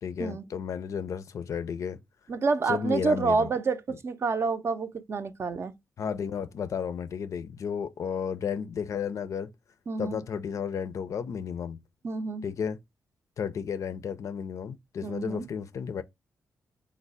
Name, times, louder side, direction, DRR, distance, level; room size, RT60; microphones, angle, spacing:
voice 1, 0.0-2.0 2.7-3.5 6.0-9.5 10.0-11.8 12.4-12.8 13.4-16.0, left 7 dB, 65° left, 0.4 m, -33 dB
voice 2, 2.3-5.7 9.9-10.2 12.0-12.4 15.0-15.5, right 4 dB, 50° right, 0.5 m, -28 dB
3.2 x 2.0 x 3.8 m
cardioid pair, 60°, 6 cm